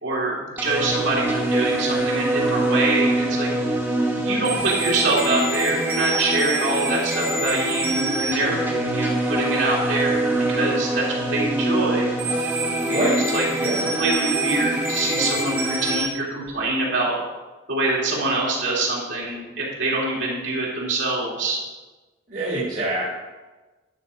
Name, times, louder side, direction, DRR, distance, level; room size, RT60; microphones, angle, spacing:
voice 1, 0.0-3.5 4.1-8.6 8.9-12.1 12.9-17.1 17.7-21.6, right 2 dB, 65° right, -4 dB, 2.8 m, -25 dB
sound 1, 0.6-16.1, right 1 dB, 10° right, 1.1 m, -24 dB
voice 2, 12.9-13.3 13.6-13.9 22.3-23.1, right 1 dB, 40° right, -6 dB, 1.8 m, -25 dB
11.0 x 5.7 x 5.0 m, 1.2 s
head